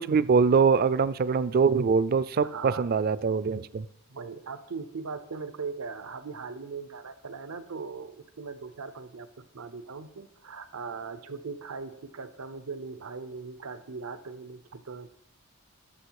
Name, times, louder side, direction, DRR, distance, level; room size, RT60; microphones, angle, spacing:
voice 1, 0.0-3.8, right 5 dB, 45° right, 17 dB, 0.4 m, -23 dB
voice 2, 2.4-2.9 4.1-9.3 9.5-15.1, right 5 dB, 90° right, 12 dB, 0.7 m, -39 dB
11.0 x 7.1 x 4.7 m, 0.78 s
head